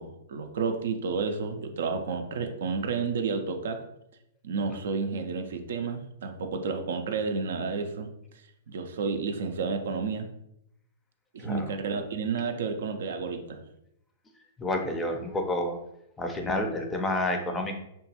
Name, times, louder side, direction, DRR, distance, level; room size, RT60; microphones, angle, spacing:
voice 1, 0.0-3.8 4.4-8.1 8.7-10.3 11.3-13.6, right 5 dB, 70° right, 6 dB, 0.4 m, -31 dB
voice 2, 11.4-11.7 14.6-15.8 16.2-17.8, left 1 dB, 15° left, 3 dB, 0.5 m, -29 dB
2.9 x 2.2 x 2.8 m, 0.79 s
hypercardioid pair, 115°, 0 cm